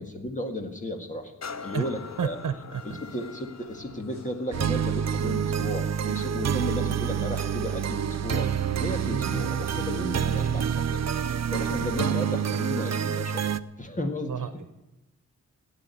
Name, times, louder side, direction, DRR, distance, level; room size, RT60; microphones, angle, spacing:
voice 1, 0.0-1.3 1.6-2.4 2.8-8.5 8.8-11.1 11.5-13.4 13.8-14.4, left 1 dB, 25° left, 5 dB, 1.9 m, -34 dB
sound 1, 1.4-9.0 9.6-9.7, left 5 dB, 60° left, 0.9 m, -46 dB
voice 2, 2.2-3.0 9.1-9.8 11.8-12.2 14.3-14.5, right 7 dB, 85° right, 10 dB, 1.0 m, -32 dB
sound 2, 3.7-10.0, left 4 dB, 80° left, 4.3 m, -52 dB
sound 3, 4.5-13.6, right 8 dB, 55° right, 0.6 m, -27 dB
16.5 x 9.2 x 9.1 m, 0.97 s
wide cardioid pair, 120°, 31 cm